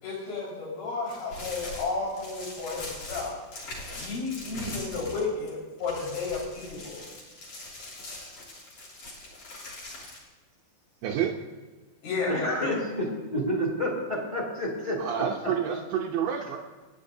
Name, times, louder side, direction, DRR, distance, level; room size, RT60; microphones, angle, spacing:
voice 1, 0.0-3.4 4.0-7.0 12.0-12.8, left 4 dB, 75° left, -5 dB, 7.1 m, -32 dB
sound 1, 1.1-5.5 5.8-10.2, left 2 dB, 45° left, 4.2 m, -41 dB
voice 2, 11.0-11.4 15.0-16.6, right 9 dB, 90° right, 0 dB, 1.9 m, -29 dB
voice 3, 12.3-15.5, equal, 15° left, -2 dB, 1.2 m, -30 dB
26.5 x 10.0 x 2.7 m, 1.3 s
omnidirectional pair, 5.3 m